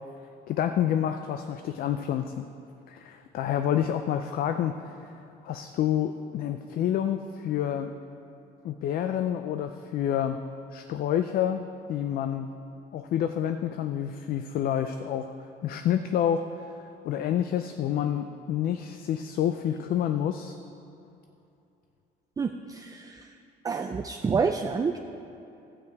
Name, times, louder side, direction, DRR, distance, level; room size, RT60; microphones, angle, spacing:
voice 1, 0.5-2.4 2.9-4.9 5.4-7.9 8.6-10.4 10.7-12.5 12.9-15.3 15.6-16.7 17.0-20.6, left 10 dB, 60° left, 8 dB, 0.5 m, -28 dB
voice 2, 22.4-23.3 23.6-25.0, right 5 dB, 20° right, 5 dB, 0.4 m, -28 dB
12.5 x 8.7 x 4.8 m, 2.8 s
cardioid pair, 110°, 17 cm